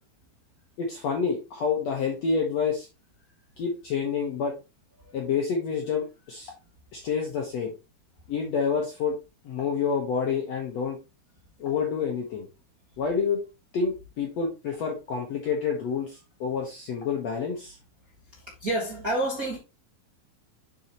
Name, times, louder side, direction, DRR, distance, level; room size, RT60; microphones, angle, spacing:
voice 1, 0.8-2.9 3.6-4.5 5.1-6.5 6.9-7.7 8.3-9.2 9.4-11.0 11.6-12.5 13.0-13.4 13.7-17.8, left 6 dB, 65° left, 1.7 m, -28 dB
voice 2, 18.3-19.6, right 1 dB, 40° right, 1.3 m, -29 dB
7.1 x 6.3 x 3.0 m
omnidirectional pair, 4.5 m